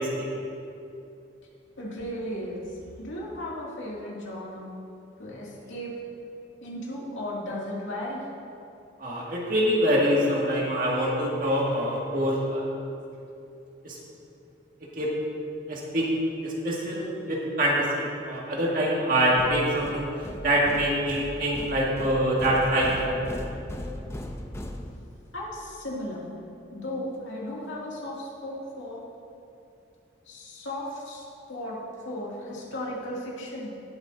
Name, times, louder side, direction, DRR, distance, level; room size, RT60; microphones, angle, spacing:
voice 1, 1.8-2.7 3.0-4.7 5.2-5.9 6.6-8.2 25.3-26.3 26.7-29.0 30.3-31.8 32.0-33.7, left 1 dB, 85° left, -4 dB, 2.3 m, -35 dB
voice 2, 9.0-12.6 13.8-14.0 15.0-15.1 15.7-16.1 16.4-20.1 20.4-23.3, equal, 45° right, -4 dB, 1.9 m, -25 dB
sound 1, 19.4-25.4, left 1 dB, 15° left, 0.5 m, -38 dB
18.5 x 8.3 x 2.6 m, 2.7 s
head